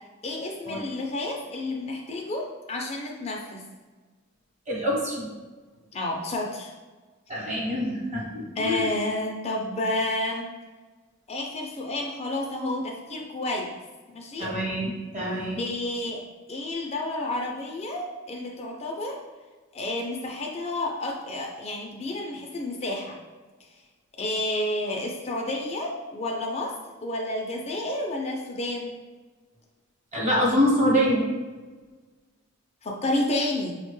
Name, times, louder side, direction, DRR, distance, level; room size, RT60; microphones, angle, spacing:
voice 1, 0.2-3.6 5.9-6.7 8.6-10.5 11.3-13.7 14.1-14.5 15.6-16.2 16.5-19.2 19.7-23.2 24.2-26.7 27.0-28.9 32.8-33.7, left 1 dB, 30° left, 0 dB, 0.4 m, -30 dB
voice 2, 4.7-5.3 7.3-8.9 14.4-15.6 30.1-31.2, equal, 35° right, -3 dB, 1.0 m, -25 dB
5.8 x 2.1 x 3.0 m, 1.3 s
head